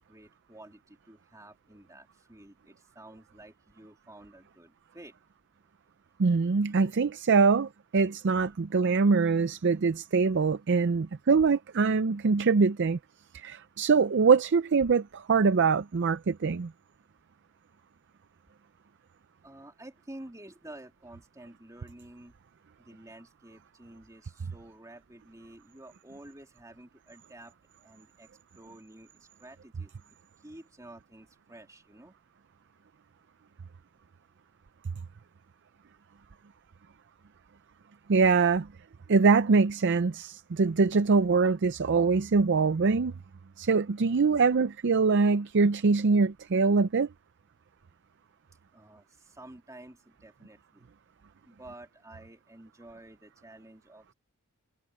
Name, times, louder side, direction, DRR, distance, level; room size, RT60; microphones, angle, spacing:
voice 1, 0.0-5.1 19.4-22.3 22.8-27.5 27.8-30.1 30.4-32.1 48.7-50.9 51.4-54.1, right 1 dB, 15° right, 2.9 m, -50 dB
voice 2, 6.2-13.0 13.3-16.7 38.1-38.7 39.1-43.1 43.6-47.1, right 4 dB, 55° right, 0.5 m, -23 dB
head